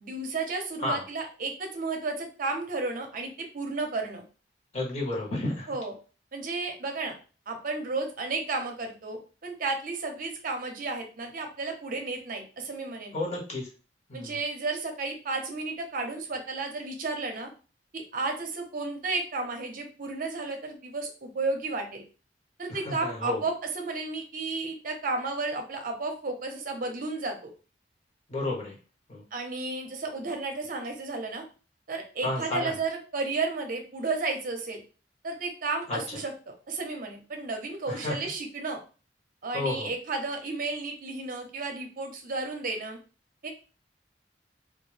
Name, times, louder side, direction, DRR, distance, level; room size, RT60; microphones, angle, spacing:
voice 1, 0.0-4.2 5.7-5.9 6.3-7.1 7.5-13.2 14.1-17.5 17.9-22.0 22.6-27.5 29.3-31.5 31.9-34.8 35.2-38.8 39.4-43.0 43.4-43.5, right 3 dB, 50° right, 4 dB, 0.6 m, -33 dB
voice 2, 4.7-5.7 13.1-13.7 14.1-14.3 22.7-23.4 28.3-28.7 29.1-29.2 32.2-32.7 35.9-36.0 37.9-38.2 39.5-39.9, left 2 dB, 40° left, -4 dB, 1.0 m, -31 dB
2.3 x 2.1 x 3.1 m, 0.35 s
head